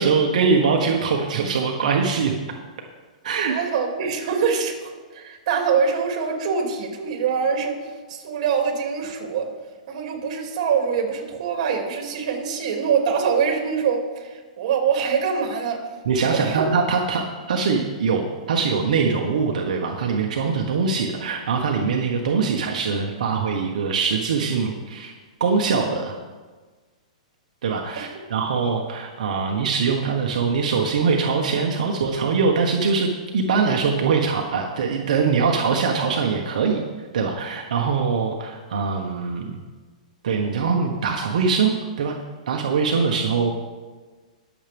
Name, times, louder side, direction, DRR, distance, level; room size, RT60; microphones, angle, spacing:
voice 1, 0.0-2.4 3.2-3.5 16.1-17.2 17.5-25.1 25.4-26.1 27.6-36.8 37.1-39.6 40.2-42.1 42.5-43.5, right 5 dB, 70° right, 1 dB, 1.3 m, -22 dB
voice 2, 3.5-9.5 9.9-15.8 16.3-16.8 28.0-28.1, right 6 dB, 50° right, 2 dB, 2.7 m, -24 dB
21.0 x 7.4 x 3.6 m, 1.4 s
hypercardioid pair, 150°, 4 cm